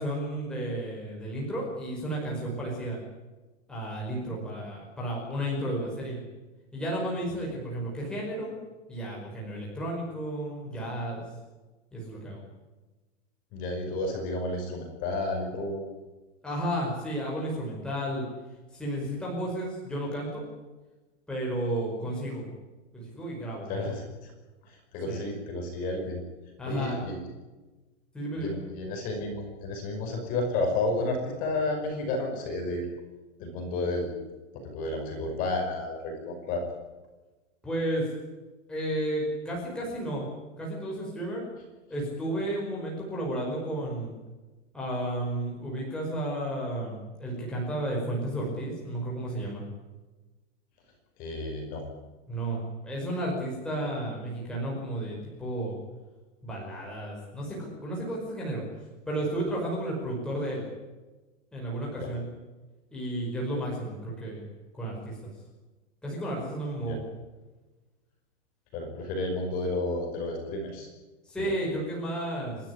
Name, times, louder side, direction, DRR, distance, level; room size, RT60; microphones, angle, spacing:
voice 1, 0.0-3.0 3.7-6.2 6.7-8.6 8.9-11.2 11.9-12.4 16.4-18.2 18.7-20.4 21.3-22.5 22.9-23.7 25.1-25.3 26.6-27.0 28.1-28.6 37.6-38.1 38.7-40.2 40.6-41.4 41.9-44.1 44.7-49.6 52.3-55.8 56.4-58.6 59.1-60.6 61.5-62.3 62.9-64.4 64.7-65.3 66.0-67.0 71.3-72.6, right 1 dB, ahead, -4 dB, 5.2 m, -32 dB
voice 2, 13.5-15.9 23.7-24.3 24.7-26.2 26.7-27.2 28.4-32.9 33.4-34.1 34.5-36.6 51.2-51.8 62.0-62.1 66.9-67.0 68.7-70.9 71.4-71.5, left 2 dB, 25° left, 3 dB, 5.4 m, -31 dB
29.5 x 13.5 x 9.8 m, 1.2 s
supercardioid pair, 175°, 37 cm